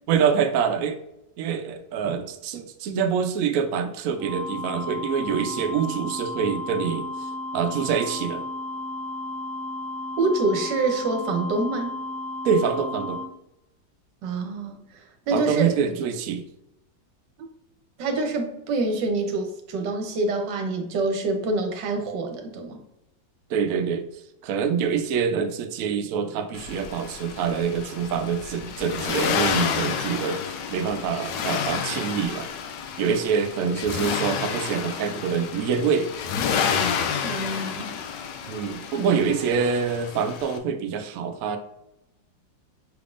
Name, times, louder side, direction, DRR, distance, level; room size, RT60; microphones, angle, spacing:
voice 1, 0.1-1.0 1.4-7.1 7.5-8.5 12.4-13.2 15.3-16.5 23.5-24.1 24.4-32.5 33.0-36.1 38.5-41.6, right 6 dB, 90° right, 7 dB, 0.7 m, -25 dB
sound 1, 4.2-13.2, left 2 dB, 35° right, 1.6 m, -33 dB
voice 2, 10.2-11.9 14.2-14.8 15.3-15.7 18.0-22.8 37.2-37.9 39.0-39.2, right 3 dB, 70° right, 4 dB, 1.4 m, -26 dB
Accelerating revving vroom, 26.5-40.6, left 7 dB, 75° left, 1.2 m, -30 dB
5.8 x 3.5 x 2.5 m, 0.84 s
omnidirectional pair, 2.0 m